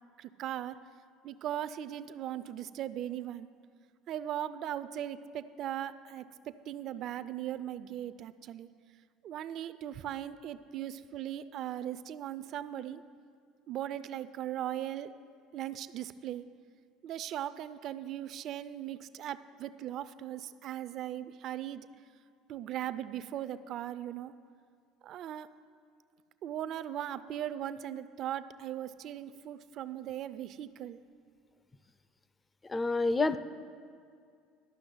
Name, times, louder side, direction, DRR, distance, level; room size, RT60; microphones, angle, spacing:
voice 1, 0.2-0.8 1.2-3.5 4.1-8.7 9.2-13.0 13.7-15.1 15.5-16.4 17.0-21.9 22.5-24.3 25.0-25.5 26.4-31.0, right 11 dB, 55° right, 14 dB, 0.4 m, -38 dB
voice 2, 32.7-33.4, left 3 dB, 20° left, 14 dB, 0.5 m, -27 dB
12.0 x 6.0 x 7.8 m, 2.3 s
supercardioid pair, 100°, 0 cm